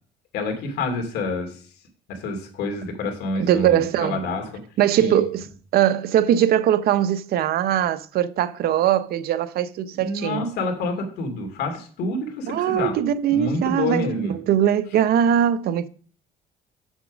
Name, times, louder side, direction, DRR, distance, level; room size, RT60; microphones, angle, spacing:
voice 1, 0.3-1.6 2.1-4.5 5.0-5.2 9.9-13.0 13.3-14.4, left 2 dB, 80° left, 2.7 m, -28 dB
voice 2, 3.4-4.2 4.8-5.4 5.7-10.4 12.5-15.9, right 10 dB, 65° right, 0.7 m, -21 dB
7.3 x 7.1 x 5.0 m
cardioid pair, 110°, 17 cm